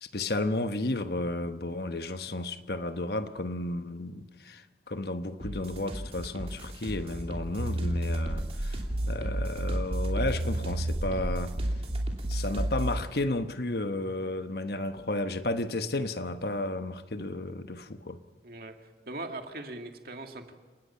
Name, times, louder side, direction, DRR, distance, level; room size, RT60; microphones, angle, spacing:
voice 1, 0.0-8.8 9.1-11.6 12.3-18.2, left 2 dB, 60° left, 1.1 m, -33 dB
sound 1, 5.4-13.0, equal, 35° right, 2.9 m, -39 dB
sound 2, 7.6-13.0, right 1 dB, 85° right, 1.1 m, -31 dB
voice 2, 18.4-20.5, right 2 dB, 55° right, 2.1 m, -40 dB
29.5 x 18.5 x 5.7 m
head